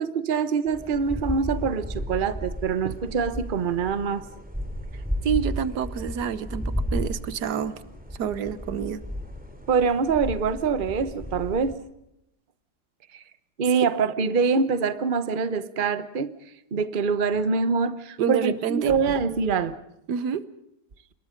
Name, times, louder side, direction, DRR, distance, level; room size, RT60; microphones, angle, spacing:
voice 1, 0.0-4.2 9.7-11.8 13.6-16.3 16.7-19.7, right 5 dB, 35° right, 13 dB, 1.1 m, -24 dB
sound 1, 0.7-11.7, equal, 5° right, 3.1 m, -34 dB
voice 2, 4.9-7.8 8.2-9.0 13.1-13.2 13.7-13.9 18.2-19.0 20.1-20.4, right 7 dB, 85° right, 15 dB, 1.6 m, -28 dB
27.5 x 21.5 x 5.2 m, 0.82 s
omnidirectional pair, 1.7 m